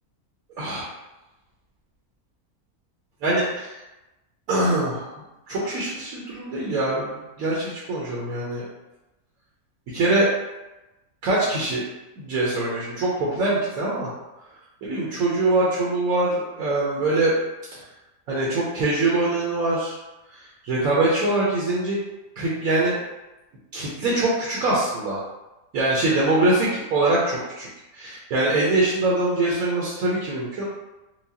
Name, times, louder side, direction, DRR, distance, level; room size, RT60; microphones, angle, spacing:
voice 1, 0.6-0.9 3.2-3.7 4.5-5.1 5.5-7.1 7.4-8.6 9.9-10.3 11.2-11.8 12.2-14.1 14.8-17.3 18.3-20.0 20.3-22.0 22.4-22.9 23.7-25.2 25.7-27.7 27.9-30.6, right 2 dB, 75° right, -6 dB, 1.2 m, -23 dB
4.6 x 2.0 x 2.7 m, 1.0 s
omnidirectional pair, 1.6 m